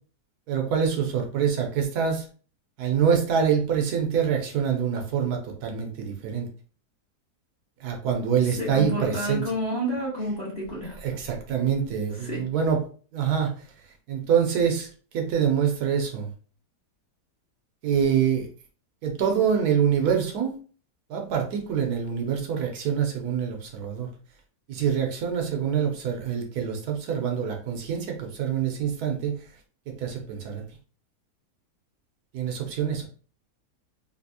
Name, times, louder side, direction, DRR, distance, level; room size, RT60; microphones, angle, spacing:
voice 1, 0.5-2.3 2.8-6.5 7.8-9.4 11.0-12.8 13.1-13.5 14.1-14.9 15.1-16.3 17.8-18.5 19.0-20.5 21.1-24.1 24.7-29.3 29.9-30.6 32.3-33.1, right 7 dB, 75° right, 2 dB, 1.1 m, -25 dB
voice 2, 8.4-11.0 12.1-12.4, equal, 30° left, -5 dB, 1.1 m, -30 dB
3.3 x 2.7 x 2.7 m, 0.40 s
omnidirectional pair, 1.8 m